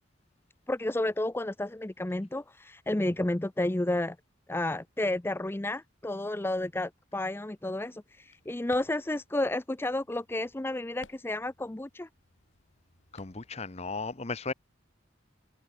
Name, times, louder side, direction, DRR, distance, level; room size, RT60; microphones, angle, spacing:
voice 1, 0.7-4.2 4.5-12.1, left 1 dB, 10° left, 0.5 m, -31 dB
sound 1, 8.1-14.0, left 3 dB, 80° left, 3.3 m, -60 dB
voice 2, 13.1-14.5, left 4 dB, 35° left, 1.0 m, -35 dB
head